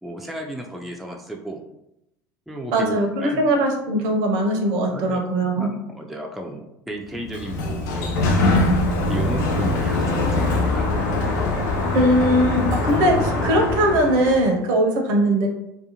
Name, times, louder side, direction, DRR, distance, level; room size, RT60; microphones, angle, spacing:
voice 1, 0.0-1.6 2.5-3.4 4.9-5.2 5.6-8.4 9.1-11.1, right 1 dB, ahead, 0 dB, 0.4 m, -33 dB
voice 2, 2.7-5.7 11.9-15.5, right 1 dB, 60° right, 2 dB, 0.6 m, -20 dB
Sliding door, 7.1-14.5, left 2 dB, 65° left, 0.5 m, -22 dB
2.5 x 2.3 x 2.8 m, 0.86 s
figure-of-eight pair, 70°, 10 cm